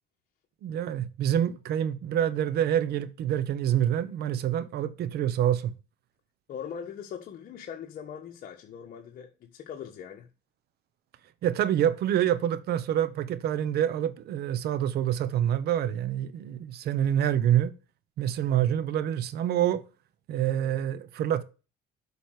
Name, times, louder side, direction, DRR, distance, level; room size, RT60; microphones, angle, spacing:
voice 1, 0.6-5.7 11.4-17.7 18.2-19.8 20.3-21.4, right 10 dB, 70° right, 1.1 m, -26 dB
voice 2, 6.5-10.3, left 8 dB, 60° left, 1.4 m, -41 dB
8.2 x 5.0 x 6.6 m
cardioid pair, 110°, 17 cm